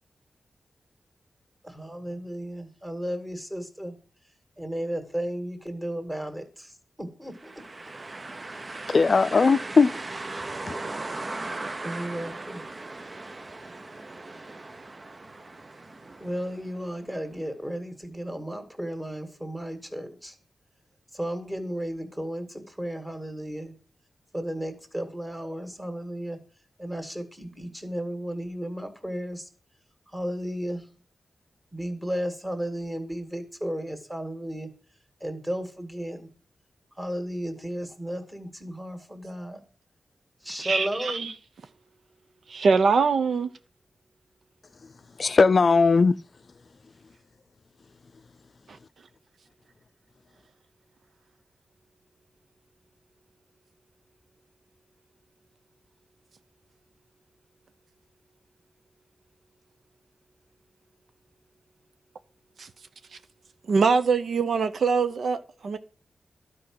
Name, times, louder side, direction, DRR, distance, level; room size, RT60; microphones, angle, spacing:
voice 1, 1.6-4.0 4.6-7.5 11.8-12.6 16.2-20.3 21.1-23.8 24.3-26.4 26.8-29.5 30.1-30.9 31.7-34.7 35.2-36.3 37.0-39.6 40.4-41.3, equal, 10° right, 2.1 m, -34 dB
sound 1, 7.3-17.1, right 2 dB, 35° right, 0.7 m, -38 dB
voice 2, 8.9-9.9 10.7-10.8 45.2-46.2, left 4 dB, 50° left, 0.4 m, -19 dB
voice 3, 40.6-41.3 42.5-43.5 48.7-48.8 62.6-62.7 63.7-65.8, right 5 dB, 75° right, 0.7 m, -23 dB
12.0 x 4.9 x 7.7 m
wide cardioid pair, 95°, 0 cm